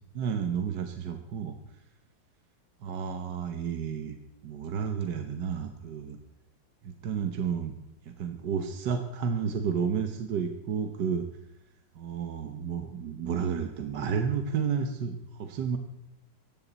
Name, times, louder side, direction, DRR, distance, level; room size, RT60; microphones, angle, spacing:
voice 1, 0.1-1.5 2.8-4.2 4.4-6.2 6.8-7.7 8.1-11.2 12.0-15.8, right 7 dB, 70° right, 6 dB, 1.6 m, -31 dB
17.5 x 15.0 x 4.1 m, 0.87 s
omnidirectional pair, 2.0 m